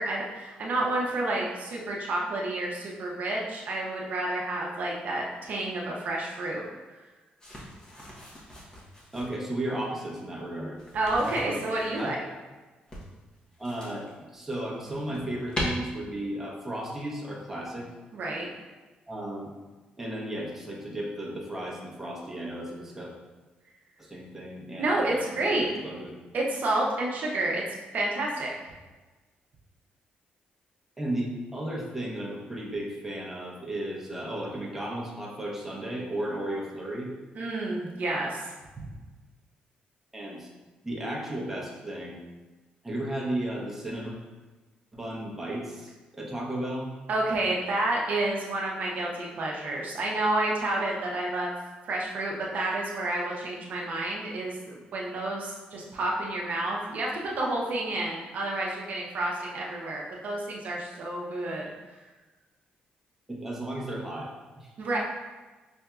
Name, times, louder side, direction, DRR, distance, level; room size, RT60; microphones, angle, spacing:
voice 1, 0.0-6.6 10.9-12.2 18.1-18.5 24.8-25.7 26.3-27.6 27.9-28.7 37.3-38.4 38.8-38.9 47.1-51.5 51.8-61.6 64.8-65.0, right 2 dB, 65° right, -2 dB, 0.7 m, -30 dB
sound 1, 7.4-9.4 10.8-12.1 12.9-14.1 14.6-15.6, left 1 dB, 25° left, 0.9 m, -40 dB
voice 2, 9.1-10.8 11.2-11.6 12.0-12.1 13.6-17.9 19.1-19.5 20.0-23.1 24.0-26.1 31.0-37.1 40.1-40.5 40.8-42.2 42.8-44.1 44.9-46.9 63.3-64.3 64.6-64.7, right 1 dB, 10° right, -4 dB, 0.9 m, -34 dB
5.5 x 2.6 x 2.3 m, 1.2 s
cardioid pair, 100°, 3 cm